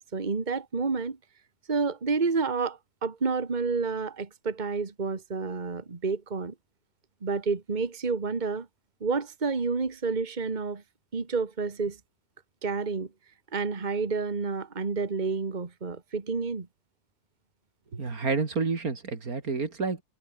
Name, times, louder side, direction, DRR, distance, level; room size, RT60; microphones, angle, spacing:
voice 1, 0.1-1.2 1.7-6.5 7.2-8.7 9.0-10.8 11.1-12.0 12.6-13.1 13.5-16.7, right 4 dB, 30° right, 1.8 m, -29 dB
voice 2, 17.9-20.0, right 4 dB, 85° right, 3.3 m, -29 dB
omnidirectional pair, 1.5 m